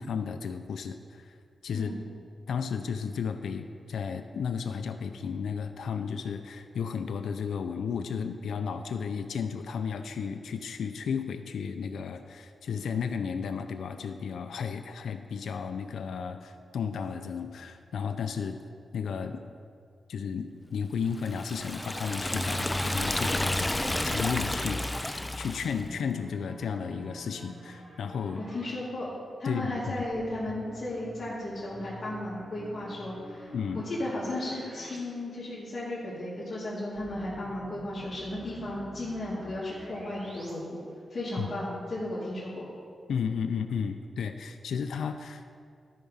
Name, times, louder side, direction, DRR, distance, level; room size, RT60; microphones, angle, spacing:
voice 1, 0.0-1.3 1.6-1.9 2.5-18.6 18.9-19.4 20.1-28.4 29.4-29.7 33.5-33.9 41.4-41.5 43.1-45.5, left 6 dB, 90° left, 7 dB, 0.4 m, -33 dB
Liquid, 21.2-25.8, left 1 dB, 10° left, 0.4 m, -30 dB
sound 1, 25.6-28.7 30.1-35.0 35.3-35.4 37.0-40.5, right 1 dB, 45° right, 2.7 m, -48 dB
voice 2, 28.4-29.1 29.4-33.5 33.7-40.8 41.1-42.7, left 1 dB, 40° left, -10 dB, 2.4 m, -35 dB
12.5 x 4.9 x 5.6 m, 2.3 s
wide cardioid pair, 110°, 0 cm